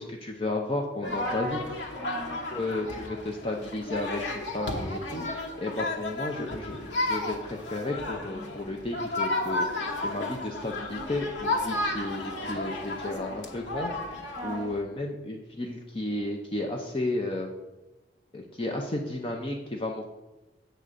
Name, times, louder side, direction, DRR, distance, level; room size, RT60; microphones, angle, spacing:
voice 1, 0.0-1.6 2.5-17.5 18.3-20.0, left 2 dB, 30° left, 2 dB, 0.6 m, -33 dB
sound 1, 1.0-14.8, left 2 dB, 80° left, 1.1 m, -33 dB
voice 2, 1.1-3.0 14.4-14.7, right 1 dB, 20° right, -3 dB, 2.1 m, -38 dB
7.7 x 3.7 x 6.6 m, 1.0 s
head